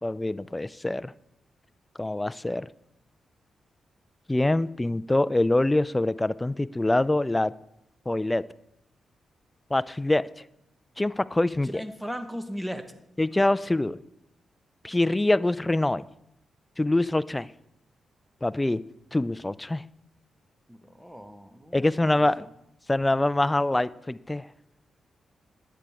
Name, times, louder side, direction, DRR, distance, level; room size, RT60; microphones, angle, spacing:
voice 1, 0.0-1.1 2.0-2.7 4.3-7.5 8.1-8.4 9.7-10.3 11.0-11.7 13.2-14.0 14.8-16.1 16.8-17.5 18.4-18.8 19.1-19.8 21.7-22.5 22.9-24.5, left 2 dB, 20° left, 0.4 m, -24 dB
voice 2, 11.5-12.9 20.7-22.5, equal, 5° right, 1.2 m, -38 dB
9.8 x 8.1 x 3.6 m
supercardioid pair, 45°, 0 cm